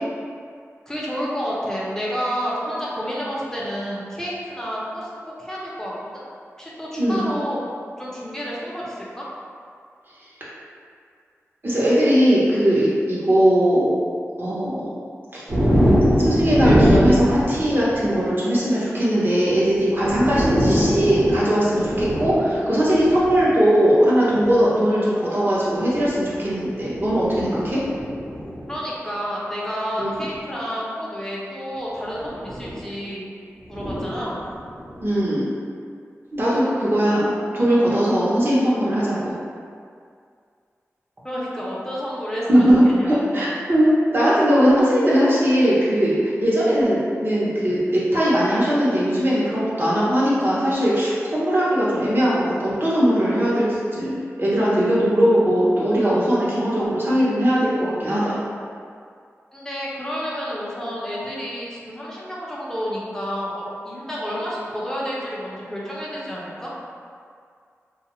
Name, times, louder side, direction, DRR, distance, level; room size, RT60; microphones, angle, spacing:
voice 1, 0.9-5.1 5.4-6.2 6.6-7.6 8.0-9.2 28.7-33.3 33.7-34.4 41.2-43.4 59.5-66.7, equal, 10° left, -6 dB, 0.7 m, -30 dB
voice 2, 11.6-13.9 14.4-14.9 15.3-15.4 16.2-27.8 30.0-30.1 35.0-35.5 36.3-39.3 42.5-53.7 53.9-58.4, equal, 45° right, -8 dB, 0.9 m, -19 dB
sound 1, 15.5-18.2 19.5-19.6 19.9-23.5 24.4-24.6 25.8-28.8 30.2-30.4 32.1-32.9 33.7-35.1, equal, 65° right, 1.1 m, -22 dB
2.4 x 2.3 x 3.0 m, 2.2 s
cardioid pair, 45°, 5 cm